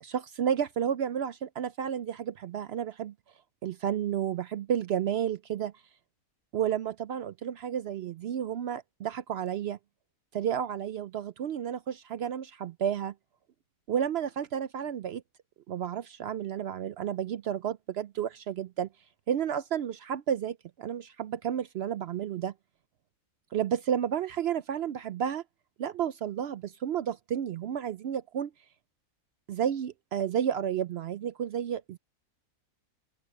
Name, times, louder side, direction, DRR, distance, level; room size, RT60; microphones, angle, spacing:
voice 1, 0.0-3.1 3.6-5.7 6.5-9.8 10.3-13.1 13.9-15.2 15.7-18.9 19.3-22.5 23.5-25.4 25.8-28.5 29.5-32.0, right 9 dB, 70° right, 0.6 m, -31 dB
open air
omnidirectional pair, 1.5 m